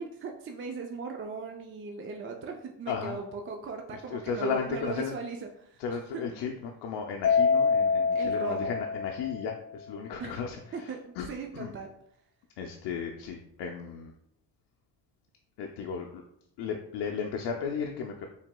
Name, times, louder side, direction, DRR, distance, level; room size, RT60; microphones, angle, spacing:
voice 1, 0.0-6.2 8.1-8.8 10.2-10.3 10.7-11.9, right 4 dB, 30° right, 3 dB, 0.4 m, -38 dB
voice 2, 2.9-3.2 3.9-5.1 5.8-11.3 11.5-11.7 12.6-14.1 15.6-16.2 16.6-18.3, left 6 dB, 80° left, 2 dB, 0.5 m, -35 dB
Mallet percussion, 7.2-9.7, left 5 dB, 35° left, 0.6 m, -26 dB
4.6 x 3.3 x 2.2 m, 0.74 s
cardioid pair, 75°, 40 cm